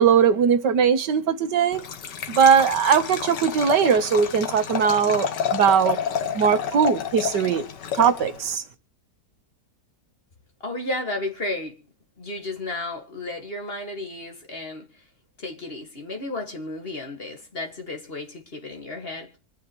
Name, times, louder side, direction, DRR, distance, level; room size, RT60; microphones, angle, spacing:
voice 1, 0.0-1.8 2.3-6.0 6.3-7.7 7.9-8.6, right 7 dB, 80° right, 1.8 m, -20 dB
Liquid, 1.7-8.6, left 8 dB, 85° left, 1.8 m, -30 dB
voice 2, 10.6-11.8 12.2-14.9 15.4-19.4, left 2 dB, 35° left, 2.2 m, -33 dB
25.5 x 10.0 x 3.1 m
omnidirectional pair, 1.8 m